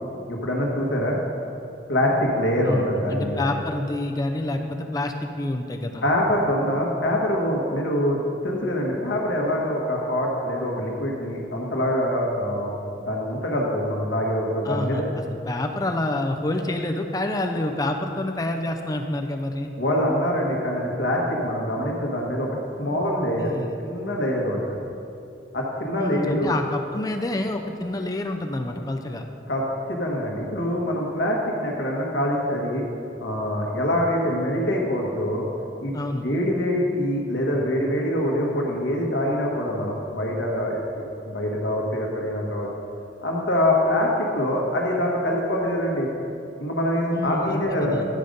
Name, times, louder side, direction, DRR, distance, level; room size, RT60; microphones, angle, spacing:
voice 1, 0.3-1.2 1.9-3.5 6.0-12.7 13.0-15.1 19.8-22.5 22.8-23.5 23.8-24.8 25.5-26.6 29.5-29.6 29.9-32.9 33.2-35.5 35.8-35.9 36.2-40.8 41.3-42.7 43.2-46.1 46.6-48.0, left 1 dB, 75° left, -2 dB, 1.5 m, -24 dB
voice 2, 2.7-6.1 14.6-19.7 22.9-23.0 23.4-23.8 26.0-29.3 35.9-36.3 47.1-48.1, left 1 dB, 20° left, 4 dB, 0.4 m, -28 dB
11.0 x 5.1 x 5.3 m, 2.7 s
head